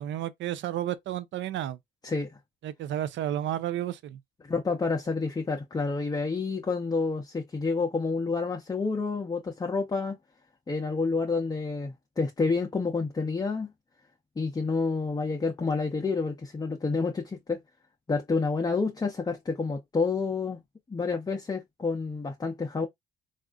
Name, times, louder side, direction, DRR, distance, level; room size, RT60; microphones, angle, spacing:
voice 1, 0.0-1.8 2.6-4.2, right 12 dB, 70° right, 0.5 m, -32 dB
voice 2, 2.0-2.3 4.5-10.2 10.7-13.7 14.4-17.6 18.1-20.6 20.9-22.9, left 4 dB, 20° left, 0.6 m, -29 dB
3.4 x 2.5 x 2.4 m
cardioid pair, 90°, 20 cm